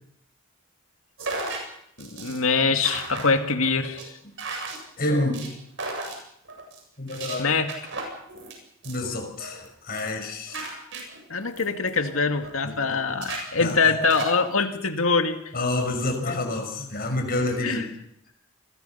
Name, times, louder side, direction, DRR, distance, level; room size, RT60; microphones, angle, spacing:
sound 1, 1.2-1.6 2.0-2.4 2.8-3.3 3.6-4.0 4.4-4.8 5.1-5.5 5.8-6.2 6.5-6.8 7.1-7.3 7.7-8.5 8.8-9.1 9.4-9.7 9.9-10.2 10.5-12.5 12.8-12.9 13.2-14.3, right 3 dB, 60° right, 7.7 m, -35 dB
voice 1, 2.0-4.1 4.5-4.6 7.4-7.7 11.3-15.4 16.3-16.4 17.6-17.9, left 4 dB, 80° left, 6 dB, 2.2 m, -24 dB
voice 2, 5.0-5.4 7.0-7.5 8.8-10.7 12.6-12.7 13.6-13.8 15.5-17.8, left 2 dB, 45° left, 4 dB, 5.8 m, -28 dB
29.5 x 22.0 x 5.7 m, 0.72 s
head